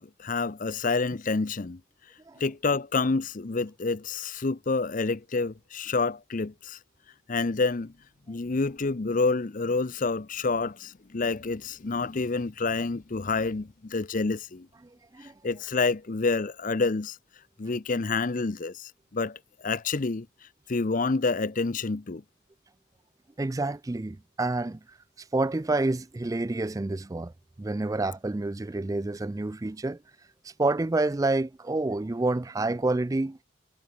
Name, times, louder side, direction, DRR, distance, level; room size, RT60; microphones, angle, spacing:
voice 1, 0.0-1.8 2.4-6.8 7.3-7.9 8.3-14.7 15.4-17.2 17.6-20.3 20.7-22.2, left 3 dB, 40° left, 0.6 m, -28 dB
voice 2, 23.4-27.3 27.6-30.0 30.4-33.4, right 2 dB, 15° right, 0.3 m, -28 dB
head